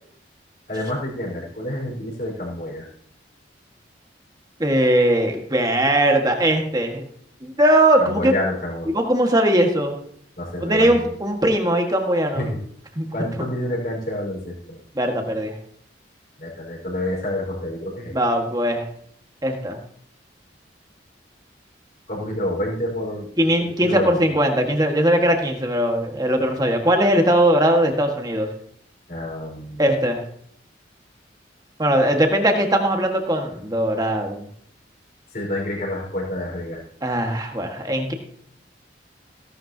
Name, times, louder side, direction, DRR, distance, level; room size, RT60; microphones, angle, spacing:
voice 1, 0.7-2.9 8.0-8.9 10.4-11.1 12.3-12.6 13.1-14.8 16.4-18.1 22.1-23.3 23.6-24.3 29.1-29.8 35.3-36.8, left 1 dB, 50° left, -4 dB, 4.8 m, -28 dB
voice 2, 4.6-7.0 7.4-8.3 8.9-9.9 10.6-12.5 12.9-13.1 13.4-13.5 14.9-15.5 18.1-18.8 19.4-19.8 23.4-28.5 29.8-30.2 31.8-34.5 37.0-38.1, right 1 dB, 20° right, 3 dB, 1.6 m, -20 dB
16.5 x 12.0 x 2.8 m, 0.67 s
head